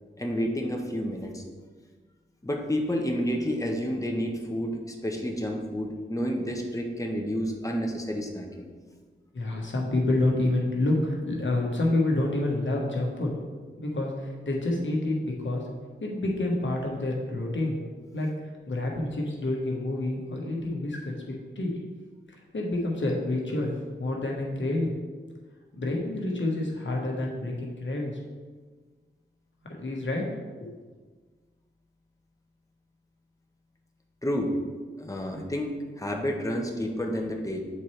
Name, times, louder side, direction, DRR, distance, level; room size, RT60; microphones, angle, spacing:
voice 1, 0.2-1.4 2.4-8.7 34.2-34.6 35.0-37.6, equal, 15° left, 1 dB, 1.0 m, -30 dB
voice 2, 9.3-13.3 13.8-15.6 16.0-17.8 18.1-21.7 22.5-24.9 25.7-28.2 29.8-30.2 30.6-30.7, left 2 dB, 65° left, -1 dB, 1.3 m, -28 dB
7.6 x 4.3 x 3.3 m, 1.5 s
cardioid pair, 45°, 21 cm